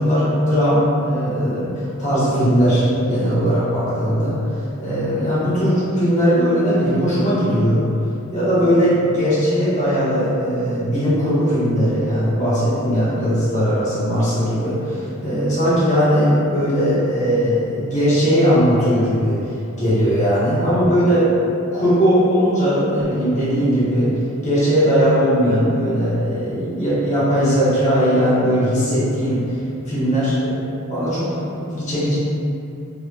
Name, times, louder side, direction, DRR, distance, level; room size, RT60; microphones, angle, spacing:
voice 1, 0.0-7.8 8.3-19.4 19.8-21.3 21.7-24.1 24.4-29.6 29.8-30.6 30.9-32.1, equal, 35° left, -12 dB, 1.1 m, -19 dB
3.2 x 2.6 x 2.3 m, 2.7 s
head